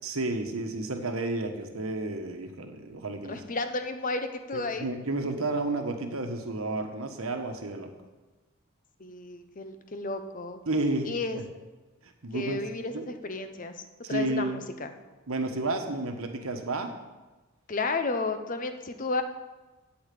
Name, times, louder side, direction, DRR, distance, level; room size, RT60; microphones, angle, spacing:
voice 1, 0.0-3.4 4.5-7.9 10.7-11.4 12.2-12.6 12.9-13.0 14.0-14.6 15.3-16.9, right 2 dB, 90° right, 6 dB, 1.3 m, -31 dB
voice 2, 3.3-4.9 9.0-10.6 11.0-11.4 12.3-13.7 14.1-14.9 17.7-19.2, left 3 dB, 40° left, 8 dB, 0.8 m, -32 dB
8.7 x 7.2 x 8.5 m, 1.2 s
head